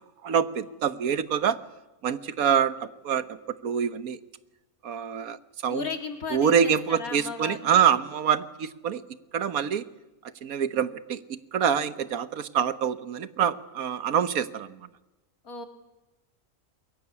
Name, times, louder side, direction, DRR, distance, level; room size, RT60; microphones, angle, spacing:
voice 1, 0.2-1.6 2.0-3.4 3.6-4.2 4.8-5.4 5.6-5.9 6.3-9.0 9.3-9.9 10.4-14.8, right 8 dB, 85° right, 13 dB, 1.5 m, -25 dB
voice 2, 5.7-7.9 15.4-15.7, left 4 dB, 85° left, 5 dB, 3.1 m, -35 dB
22.5 x 22.0 x 9.7 m, 1.0 s
omnidirectional pair, 1.5 m